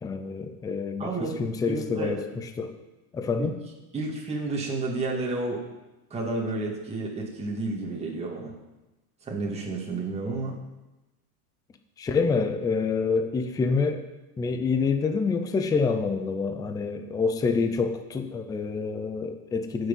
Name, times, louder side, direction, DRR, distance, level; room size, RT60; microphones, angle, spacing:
voice 1, 0.0-2.7 3.1-3.6 12.0-14.0 14.4-19.9, left 4 dB, 10° left, 7 dB, 0.5 m, -27 dB
voice 2, 1.0-2.1 3.4-3.5 3.9-5.6 6.1-8.5 9.2-10.5, right 3 dB, 15° right, -2 dB, 2.2 m, -31 dB
16.0 x 6.5 x 5.4 m, 1.1 s
supercardioid pair, 140°, 45 cm